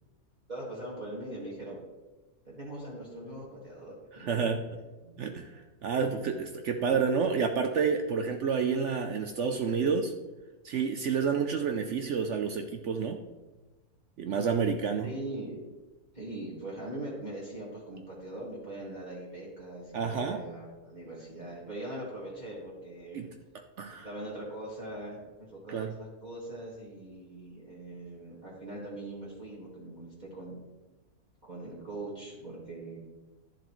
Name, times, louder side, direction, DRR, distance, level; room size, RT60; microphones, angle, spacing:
voice 1, 0.5-1.8 2.4-4.4 5.0-5.3 6.1-6.3 15.0-15.6 16.1-23.3 23.9-30.6 31.4-33.0, right 1 dB, 30° right, -7 dB, 2.1 m, -41 dB
voice 2, 4.2-4.6 5.2-10.1 10.6-13.2 14.2-15.1 19.9-20.4 23.1-23.3 23.8-24.1 25.7-25.9, right 6 dB, 60° right, 5 dB, 0.8 m, -29 dB
12.0 x 7.0 x 3.1 m, 1.2 s
omnidirectional pair, 1.6 m